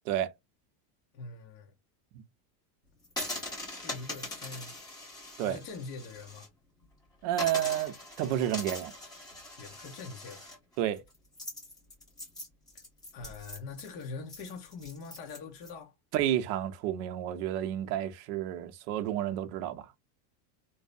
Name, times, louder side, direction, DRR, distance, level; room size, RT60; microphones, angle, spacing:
voice 1, 1.1-1.7 3.7-4.8 5.4-6.5 9.6-10.5 13.1-15.9, left 4 dB, 40° left, 0.6 m, -43 dB
sound 1, 3.0-6.5 6.8-6.9 7.3-15.7, left 1 dB, 10° left, 0.8 m, -42 dB
voice 2, 7.2-8.9 10.8-11.0 16.1-19.9, right 11 dB, 65° right, 0.6 m, -30 dB
2.6 x 2.0 x 2.3 m
cardioid pair, 175°, 50 cm